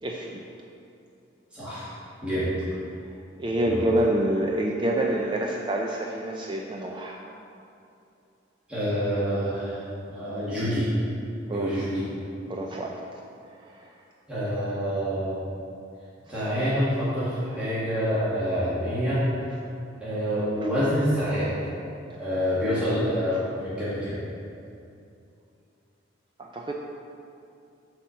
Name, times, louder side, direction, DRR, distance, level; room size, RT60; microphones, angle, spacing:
voice 1, 0.0-0.4 3.4-7.2 11.4-11.7 12.5-13.0 26.4-26.7, right 1 dB, 25° right, 0 dB, 0.4 m, -27 dB
voice 2, 1.5-1.9 2.2-2.6 3.6-3.8 8.7-9.8 10.1-10.9 11.5-12.1 14.3-15.4 16.3-19.2 20.0-21.5 22.2-24.2, equal, 5° right, -12 dB, 1.9 m, -27 dB
8.0 x 4.3 x 6.3 m, 2.6 s
head